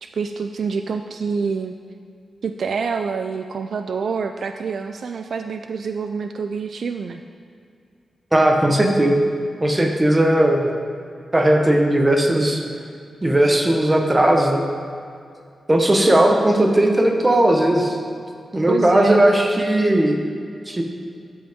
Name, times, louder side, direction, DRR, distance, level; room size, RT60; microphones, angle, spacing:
voice 1, 0.0-1.7 2.4-7.2 18.7-19.2, right 5 dB, 60° right, 7 dB, 0.3 m, -26 dB
voice 2, 8.3-9.2 9.6-10.7 11.3-12.6 13.2-14.6 15.7-18.0 18.5-20.2 20.7-20.8, right 1 dB, 15° right, 2 dB, 1.0 m, -17 dB
13.5 x 7.7 x 3.6 m, 2.3 s
wide cardioid pair, 165°, 0 cm